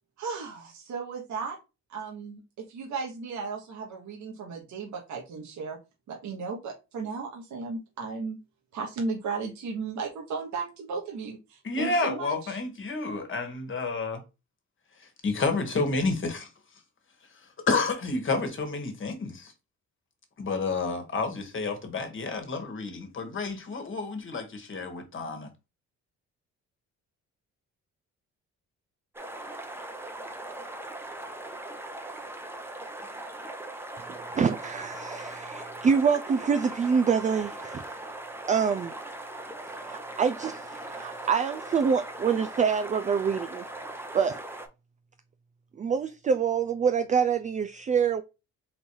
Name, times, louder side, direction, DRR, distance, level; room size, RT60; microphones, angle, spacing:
voice 1, 0.2-1.6 1.9-5.8 6.1-8.4 8.7-12.6, right 4 dB, 70° right, 1.3 m, -35 dB
voice 2, 11.6-14.2 15.2-16.5 17.7-19.5 20.4-25.5, left 3 dB, 40° left, 1.4 m, -30 dB
sound 1, 29.1-44.7, right 2 dB, 10° right, 0.8 m, -40 dB
voice 3, 34.1-38.0 38.5-38.9 39.9-43.6 44.1-44.4 45.8-48.2, right 6 dB, 25° right, 0.3 m, -26 dB
3.9 x 2.6 x 4.6 m
cardioid pair, 90°, 30 cm